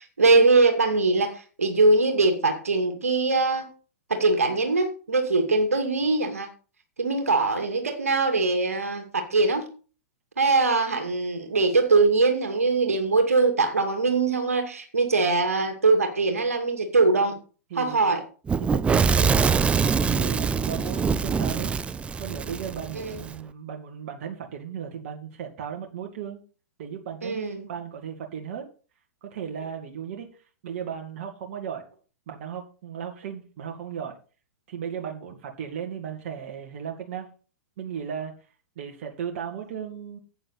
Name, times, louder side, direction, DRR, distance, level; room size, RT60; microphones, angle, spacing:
voice 1, 0.0-3.7 4.1-6.5 7.0-9.7 10.4-17.3 17.8-18.2 23.0-23.1 27.2-27.7, right 3 dB, 80° right, 2.3 m, -22 dB
voice 2, 17.7-18.1 18.7-21.7 22.2-26.4 26.8-28.7 29.2-30.3 30.6-31.8 32.3-34.2 34.7-37.3 37.8-38.3 38.8-40.2, right 8 dB, 55° right, 2.2 m, -36 dB
Fire / Explosion, 18.5-23.3, right 5 dB, 15° right, 0.6 m, -24 dB
10.5 x 8.7 x 4.1 m
figure-of-eight pair, 105°, 8 cm